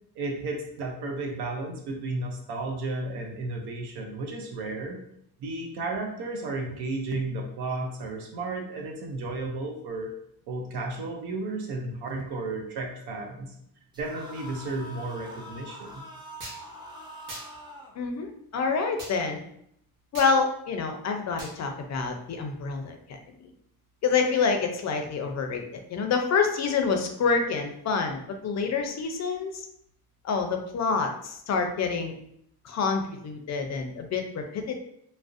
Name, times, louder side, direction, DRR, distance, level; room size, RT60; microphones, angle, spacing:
voice 1, 0.2-5.0 5.4-10.1 10.5-13.5 14.0-16.1, right 2 dB, 80° right, 1 dB, 0.7 m, -33 dB
sound 1, 13.9-17.9, equal, 10° right, 0.4 m, -44 dB
sound 2, 16.4-16.6 17.3-17.5 19.0-19.1 20.1-20.3 21.4-21.6, right 2 dB, 55° right, 0.9 m, -39 dB
voice 2, 18.0-19.4 20.1-23.0 23.4-23.5 24.0-29.6 30.2-32.2 32.6-34.8, left 5 dB, 45° left, 4 dB, 0.4 m, -27 dB
2.4 x 2.0 x 2.5 m, 0.72 s
cardioid pair, 95°, 39 cm